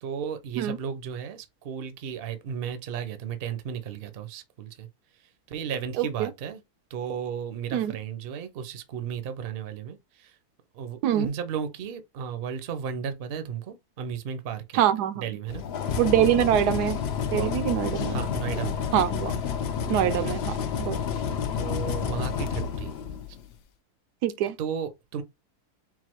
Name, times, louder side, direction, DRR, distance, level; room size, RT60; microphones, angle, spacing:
voice 1, 0.0-4.9 5.5-6.6 6.9-10.3 10.7-14.9 15.1-15.6 16.4-16.5 17.3-17.6 18.1-18.8 20.0-20.3 21.5-22.9 24.6-25.2, right 7 dB, 55° right, 0.7 m, -34 dB
voice 2, 6.0-6.3 7.7-7.9 11.0-11.3 14.7-15.2 16.0-17.0 17.3-18.1 18.9-19.3 19.9-21.0 24.2-24.6, right 11 dB, 85° right, 1.2 m, -24 dB
sound 1, 15.5-23.5, left 7 dB, 85° left, 0.5 m, -30 dB
4.0 x 2.4 x 4.4 m
omnidirectional pair, 1.7 m